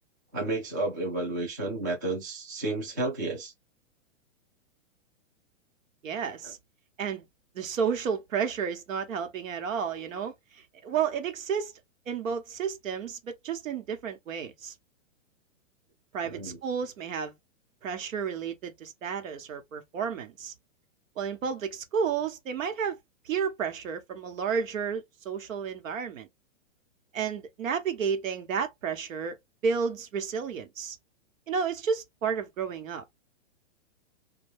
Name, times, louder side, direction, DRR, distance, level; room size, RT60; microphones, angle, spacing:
voice 1, 0.3-3.5 16.3-16.6, right 2 dB, 15° right, 0.3 m, -31 dB
voice 2, 6.0-6.6 7.0-7.3 7.5-11.7 12.1-14.7 16.1-17.3 17.8-20.5 21.2-23.0 23.2-26.3 27.1-29.4 29.6-31.0 31.5-33.0, right 6 dB, 90° right, 1.0 m, -31 dB
2.6 x 2.2 x 3.3 m
hypercardioid pair, 165°, 38 cm